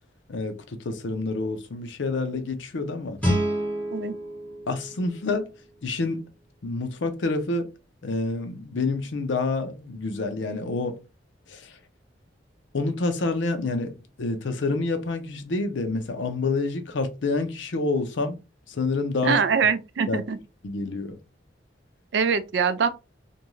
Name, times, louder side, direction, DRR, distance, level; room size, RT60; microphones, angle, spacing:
voice 1, 0.3-3.2 4.7-5.5 5.8-6.2 6.6-7.7 8.0-11.0 11.5-11.8 12.7-18.4 18.7-19.4 20.1-20.2 20.6-21.2, left 3 dB, 80° left, 0.6 m, -28 dB
Guitar, 3.2-6.0, equal, 10° left, 1.1 m, -29 dB
voice 2, 19.2-20.4 22.1-22.9, right 6 dB, 65° right, 0.4 m, -23 dB
2.5 x 2.2 x 3.1 m
head